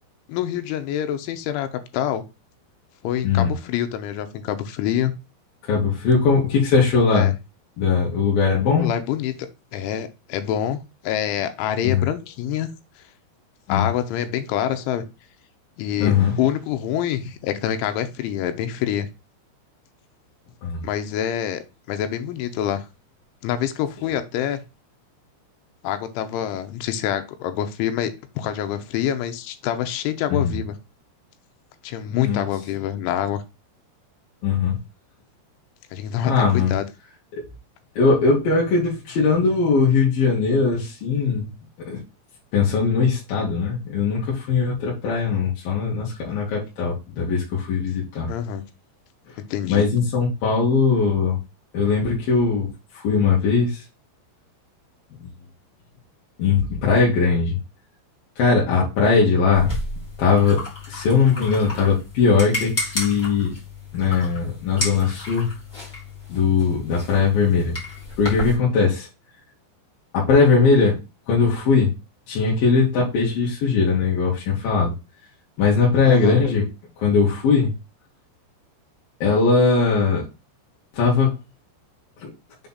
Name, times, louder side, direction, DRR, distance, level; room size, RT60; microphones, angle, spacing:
voice 1, 0.3-2.2 3.0-5.1 7.1-7.3 8.8-9.3 9.7-10.8 11.0-12.7 13.7-15.0 15.8-19.1 20.8-22.8 23.4-24.6 25.8-30.8 31.8-33.4 35.9-36.8 48.3-48.6 49.5-49.9 76.1-76.4, left 10 dB, 85° left, 8 dB, 3.2 m, -26 dB
voice 2, 5.7-7.3 7.8-8.9 11.8-12.1 13.7-13.9 16.0-16.4 20.6-20.8 30.3-30.6 32.1-32.4 34.4-34.8 36.2-36.7 38.0-41.5 41.9-42.0 42.5-48.3 49.7-51.4 51.7-53.8 55.2-55.3 56.4-57.6 58.4-59.7 60.2-63.5 63.9-65.5 66.3-67.7 68.2-69.1 70.1-71.0 71.3-71.9 72.3-74.9 75.6-76.6 77.0-77.7 79.2-80.3 80.9-81.3 82.2-82.3, left 5 dB, 60° left, -5 dB, 2.9 m, -20 dB
sound 1, 59.5-68.6, left 2 dB, 30° left, 1.0 m, -32 dB
7.2 x 3.5 x 4.0 m, 0.26 s
omnidirectional pair, 5.5 m